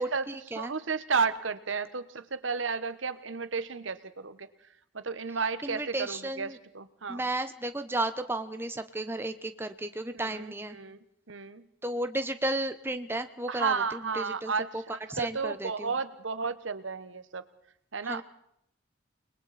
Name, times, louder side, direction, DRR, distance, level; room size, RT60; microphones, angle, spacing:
voice 1, 0.0-0.7 5.6-6.6 7.1-10.8 11.8-14.8 15.1-16.0 18.0-18.2, right 1 dB, 10° right, 8 dB, 1.0 m, -33 dB
voice 2, 0.6-4.5 4.9-7.2 10.2-11.0 11.3-11.6 13.5-17.4 17.9-18.2, right 5 dB, 90° right, 12 dB, 1.2 m, -32 dB
30.0 x 21.0 x 4.2 m, 0.73 s
head